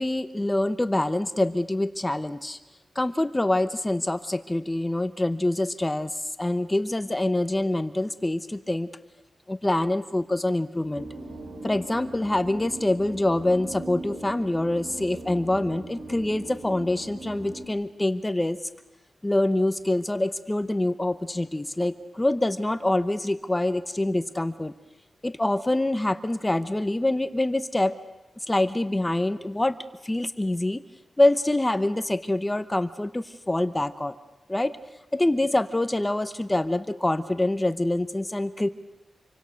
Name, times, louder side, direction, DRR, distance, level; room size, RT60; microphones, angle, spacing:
voice 1, 0.0-2.6 2.9-8.9 9.5-11.1 11.6-18.6 19.2-24.7 25.2-28.0 28.5-29.8 30.0-30.8 31.2-34.1 34.5-34.8 35.1-38.7, left 1 dB, 15° left, 11 dB, 0.9 m, -25 dB
sound 1, 10.9-17.7, right 2 dB, 85° right, 3.5 m, -40 dB
27.0 x 24.5 x 6.5 m, 1.0 s
wide cardioid pair, 110°, 0 cm